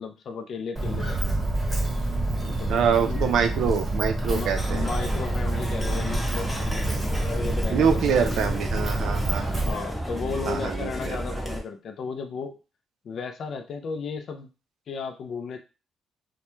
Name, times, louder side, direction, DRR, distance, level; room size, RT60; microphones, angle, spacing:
voice 1, 0.0-1.4 2.4-3.2 4.3-8.4 9.6-12.6 13.0-14.5 14.9-15.6, left 5 dB, 60° left, 6 dB, 0.3 m, -35 dB
Walk footsteps, 0.8-9.7, right 1 dB, 20° right, 1.0 m, -28 dB
voice 2, 2.7-4.9 7.7-9.5 10.5-11.2, right 7 dB, 80° right, 6 dB, 0.4 m, -25 dB
sound 1, 4.6-11.6, equal, 5° left, 0.7 m, -32 dB
2.2 x 2.1 x 3.0 m, 0.31 s
cardioid pair, 90°, 0 cm